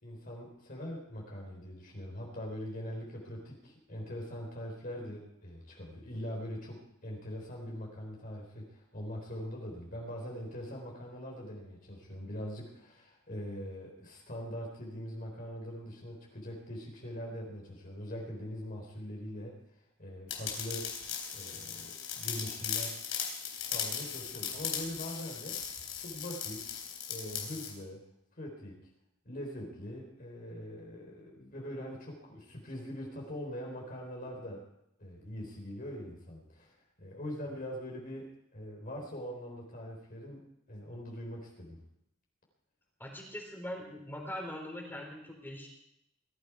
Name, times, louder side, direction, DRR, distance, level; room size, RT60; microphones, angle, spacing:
voice 1, 0.0-19.6 20.0-20.9 21.3-23.0 23.5-25.6 26.0-26.7 27.1-28.0 28.4-28.8 29.2-34.6 35.0-40.4 40.7-41.8, equal, 45° left, -1 dB, 4.0 m, -42 dB
sound 1, 20.3-27.7, left 8 dB, 70° left, 3.9 m, -38 dB
voice 2, 43.0-45.7, left 1 dB, 10° left, 1 dB, 3.9 m, -42 dB
21.0 x 14.0 x 4.8 m, 0.79 s
head